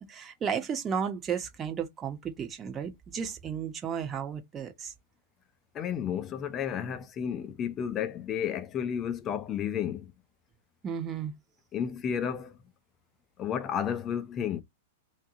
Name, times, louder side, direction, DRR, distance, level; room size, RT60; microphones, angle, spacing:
voice 1, 0.1-4.9 10.8-11.3, right 7 dB, 25° right, 1.3 m, -33 dB
voice 2, 5.7-10.1 11.7-12.6 13.4-14.6, left 8 dB, 30° left, 0.9 m, -32 dB
3.6 x 3.0 x 3.8 m
hypercardioid pair, 110°, 0 cm